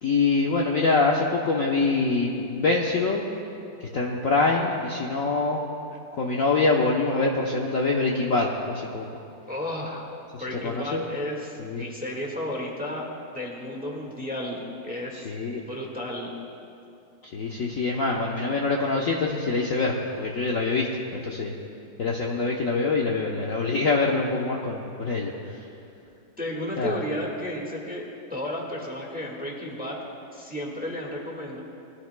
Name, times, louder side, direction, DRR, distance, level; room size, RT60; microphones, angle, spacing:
voice 1, 0.0-3.2 3.8-5.6 6.1-9.2 10.3-11.0 11.6-11.8 15.1-15.6 17.2-20.9 21.1-21.5 22.0-25.6 26.8-27.0, left 3 dB, 55° left, -2 dB, 1.1 m, -25 dB
voice 2, 9.5-10.0 10.4-13.1 13.3-15.3 15.7-16.3 26.4-28.0 28.3-30.0 30.3-31.6, left 1 dB, 5° right, -2 dB, 1.3 m, -33 dB
21.0 x 13.5 x 2.2 m, 2.7 s
omnidirectional pair, 2.1 m